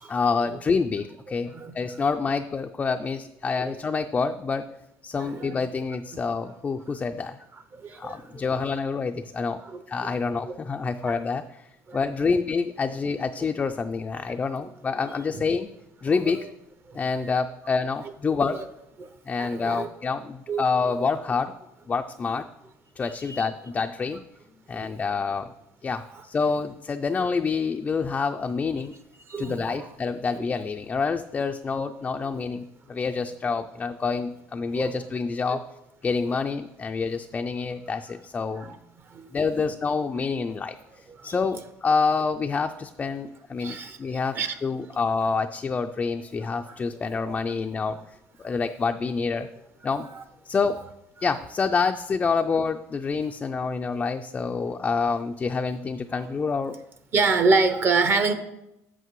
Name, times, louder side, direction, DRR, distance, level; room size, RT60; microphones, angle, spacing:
voice 1, 0.1-4.7 5.0-7.4 7.9-9.6 9.9-11.7 11.9-15.7 16.0-16.5 16.9-18.6 19.3-21.5 21.9-22.5 23.0-24.2 24.7-25.5 25.8-28.9 29.4-35.7 36.0-38.8 39.3-48.0 48.4-49.5 49.8-50.1 50.5-50.8 51.2-56.8, left 5 dB, 25° left, 6 dB, 0.3 m, -27 dB
voice 2, 5.1-5.5 7.7-8.4 9.6-10.1 10.5-10.6 11.1-11.2 11.9-12.0 14.6-14.7 15.3-15.4 16.2-16.4 16.9-17.0 18.3-18.6 19.0-19.1 19.4-19.9 20.5-20.7 23.3-23.5 24.7-24.9 26.1-26.2 29.3-29.9 33.1-33.2 34.7-35.0 35.5-35.6 38.6-38.8 39.1-39.6 41.1-41.4 43.6-44.6 46.7-46.8 47.3-47.4 50.1-50.2 56.1-56.2 57.1-58.3, right 4 dB, 40° right, 9 dB, 0.7 m, -28 dB
8.0 x 7.3 x 3.1 m, 0.87 s
supercardioid pair, 110°, 6 cm